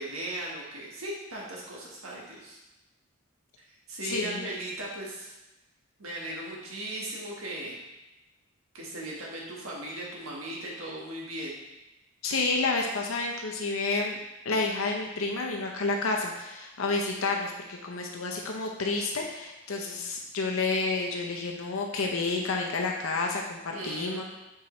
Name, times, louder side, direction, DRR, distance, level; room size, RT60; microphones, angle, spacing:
voice 1, 0.0-2.6 3.9-5.3 6.0-7.8 8.7-11.5 23.7-24.2, right 1 dB, 90° right, -3 dB, 1.4 m, -37 dB
voice 2, 4.0-4.4 12.2-14.2 14.4-24.2, left 3 dB, 85° left, 1 dB, 0.7 m, -30 dB
7.5 x 4.7 x 3.1 m, 0.98 s
head